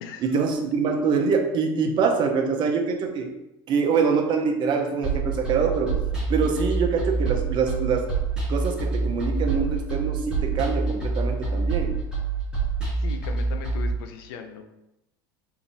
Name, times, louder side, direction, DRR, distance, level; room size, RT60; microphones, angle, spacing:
voice 1, 0.2-3.3 3.7-6.0 6.3-8.1 8.5-12.0, right 5 dB, 40° right, 4 dB, 0.6 m, -24 dB
sound 1, 5.0-13.9, right 4 dB, 5° right, 1.3 m, -26 dB
voice 2, 13.0-14.6, left 6 dB, 75° left, 6 dB, 0.5 m, -38 dB
4.7 x 2.6 x 2.8 m, 0.89 s
supercardioid pair, 120°, 12 cm